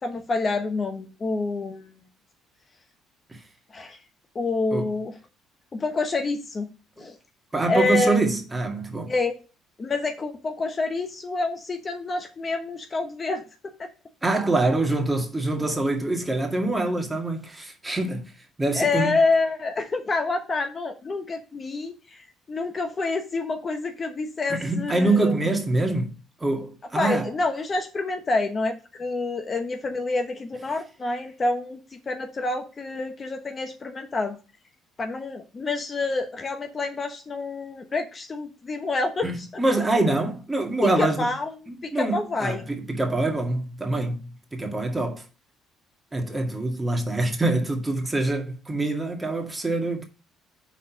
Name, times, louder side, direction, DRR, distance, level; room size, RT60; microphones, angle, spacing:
voice 1, 0.0-1.9 3.7-4.0 4.3-5.2 5.7-6.7 7.0-7.2 7.7-8.2 9.1-9.3 9.8-13.4 13.8-13.9 18.7-25.3 26.9-34.4 35.0-39.6 40.8-41.6 41.8-42.6, left 3 dB, 35° left, 1.0 m, -27 dB
voice 2, 7.5-9.1 14.2-18.2 18.6-19.2 24.5-26.1 26.4-27.3 39.2-41.3 41.7-45.3 46.1-50.0, right 2 dB, 15° right, 1.9 m, -25 dB
6.0 x 4.2 x 5.6 m
cardioid pair, 90°, 0 cm